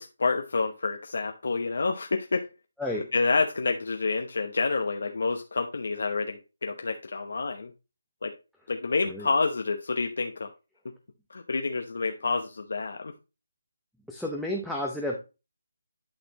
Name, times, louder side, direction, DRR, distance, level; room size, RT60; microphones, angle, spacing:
voice 1, 0.0-2.5 3.1-7.7 8.2-8.3 8.7-10.5 11.3-13.1, left 4 dB, 70° left, 0.9 m, -28 dB
voice 2, 14.1-15.2, left 1 dB, ahead, 0.8 m, -31 dB
11.5 x 4.2 x 2.9 m
figure-of-eight pair, 165°, 0 cm